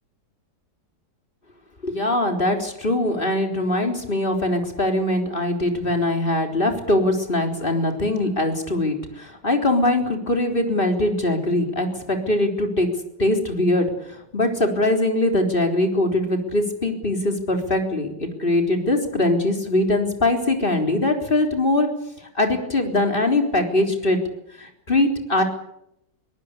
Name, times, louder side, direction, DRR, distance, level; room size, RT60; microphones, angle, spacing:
voice 1, 1.8-12.9 13.2-21.9 22.3-24.2 24.6-25.4, left 1 dB, 30° left, 4 dB, 4.1 m, -22 dB
23.0 x 18.5 x 8.5 m, 0.78 s
omnidirectional pair, 1.9 m